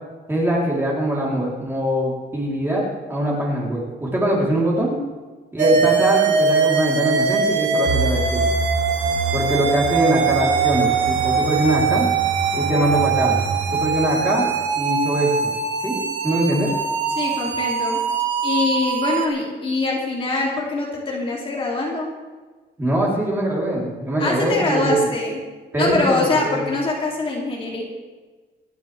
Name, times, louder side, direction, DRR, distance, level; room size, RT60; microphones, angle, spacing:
voice 1, 0.3-2.8 3.1-4.9 5.5-8.4 9.3-12.1 12.5-13.4 13.7-15.5 15.8-16.0 16.2-16.7 22.8-25.1 25.7-26.6, right 1 dB, 10° right, -4 dB, 3.8 m, -22 dB
sound 1, 5.6-19.3, right 5 dB, 75° right, 1.6 m, -22 dB
sound 2, 7.8-14.6, right 3 dB, 55° right, 3.2 m, -28 dB
voice 2, 17.2-18.0 18.4-22.1 24.2-25.4 25.8-27.8, left 2 dB, 30° left, -4 dB, 3.0 m, -23 dB
26.5 x 10.5 x 3.5 m, 1.3 s
cardioid pair, 170°, 19 cm